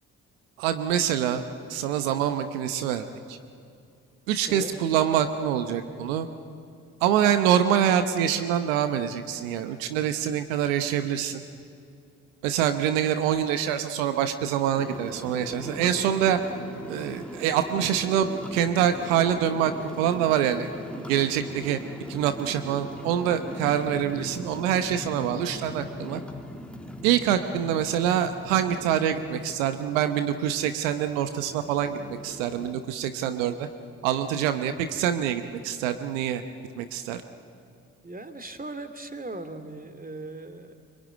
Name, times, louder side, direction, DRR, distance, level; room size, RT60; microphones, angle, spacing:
voice 1, 0.6-1.4 1.7-3.4 4.3-6.3 7.0-11.4 12.4-16.4 16.9-20.7 21.1-21.8 22.1-26.2 27.0-33.7 34.0-36.4 36.8-37.2, right 9 dB, 90° right, 9 dB, 0.9 m, -25 dB
sound 1, 14.8-32.7, left 1 dB, 5° left, 2.6 m, -40 dB
voice 2, 38.0-40.7, right 2 dB, 20° right, 10 dB, 2.7 m, -38 dB
25.0 x 24.5 x 9.2 m, 2.4 s
hypercardioid pair, 40°, 38 cm